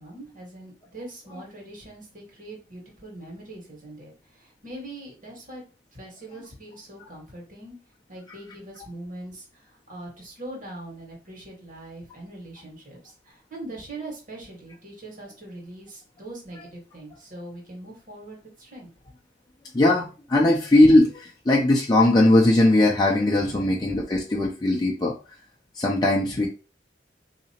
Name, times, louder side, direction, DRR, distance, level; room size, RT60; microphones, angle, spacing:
voice 1, 0.0-5.6 5.9-7.8 8.1-19.1 23.3-23.7 26.2-26.5, right 1 dB, 50° right, -1 dB, 1.6 m, -42 dB
voice 2, 19.7-25.1 25.8-26.5, left 1 dB, 25° left, -3 dB, 0.5 m, -19 dB
3.9 x 2.9 x 2.9 m, 0.33 s
head